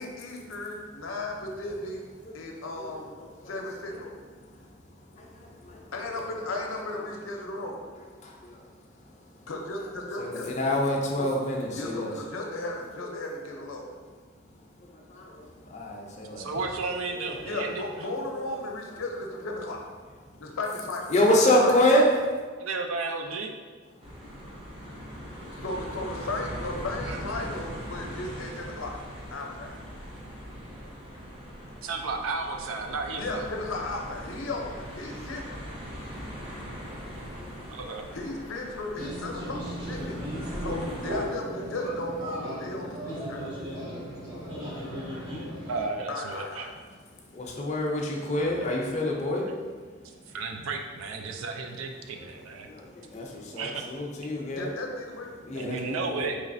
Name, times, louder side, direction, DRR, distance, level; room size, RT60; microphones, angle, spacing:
voice 1, 0.0-2.0 2.3-3.1 3.4-4.1 5.9-7.8 9.5-10.5 11.2-11.3 11.7-13.9 17.4-19.8 20.4-21.1 21.6-22.1 25.5-28.9 29.3-29.8 33.2-35.6 38.1-40.2 40.6-43.5 46.1-46.7 54.6-55.3, left 2 dB, 80° left, 1 dB, 0.6 m, -35 dB
voice 2, 10.2-12.1 13.5-13.6 15.1-16.5 21.1-22.1 36.9-37.0 37.4-37.7 47.3-49.5 52.6-54.7 55.5-56.3, left 1 dB, 35° left, -1 dB, 0.5 m, -26 dB
voice 3, 16.4-17.8 22.6-23.5 27.1-27.2 31.8-33.4 37.7-38.1 45.7-46.7 50.3-52.7 53.5-53.9 55.5-56.4, right 4 dB, 85° right, 4 dB, 0.4 m, -33 dB
sound 1, 24.0-41.3, equal, 25° right, 0.6 m, -40 dB
sound 2, 39.0-45.9, equal, 70° right, 1.3 m, -36 dB
4.0 x 3.1 x 2.6 m, 1.5 s
head